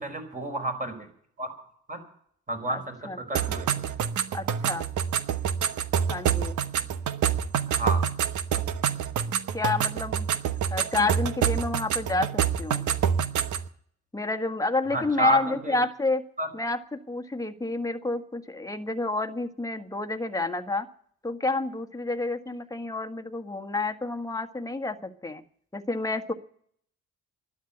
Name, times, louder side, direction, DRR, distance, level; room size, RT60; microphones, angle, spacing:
voice 1, 0.0-1.1 1.4-1.5 1.9-2.0 2.5-3.8 7.7-8.0 14.9-15.8 16.4-16.5, right 2 dB, 25° right, 5 dB, 4.8 m, -30 dB
voice 2, 2.7-3.2 4.3-4.9 6.1-6.6 9.5-10.3 10.7-12.9 14.1-16.2 16.5-20.9 21.2-25.4 25.7-26.3, left 2 dB, 10° left, 7 dB, 1.6 m, -29 dB
sound 1, 3.3-13.7, right 8 dB, 75° right, 1.1 m, -27 dB
12.0 x 10.5 x 9.8 m, 0.62 s
cardioid pair, 90°, 30 cm